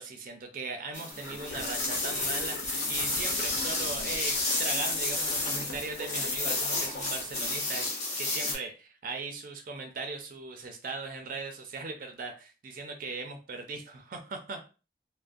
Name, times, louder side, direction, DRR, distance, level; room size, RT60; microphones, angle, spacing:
voice 1, 0.0-14.6, right 3 dB, 50° right, 5 dB, 0.4 m, -39 dB
sound 1, 0.9-8.6, left 2 dB, 40° left, 0.8 m, -31 dB
sound 2, 1.2-7.4, left 2 dB, 75° left, 0.5 m, -43 dB
2.3 x 2.1 x 2.5 m, 0.33 s
head